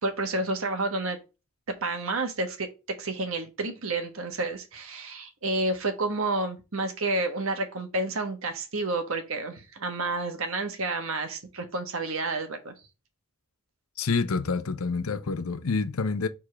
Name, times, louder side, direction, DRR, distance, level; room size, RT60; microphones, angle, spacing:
voice 1, 0.0-1.2 1.8-12.7, right 2 dB, 70° right, 1.2 m, -30 dB
voice 2, 14.0-16.3, left 4 dB, 85° left, 0.6 m, -27 dB
4.9 x 3.7 x 5.7 m
head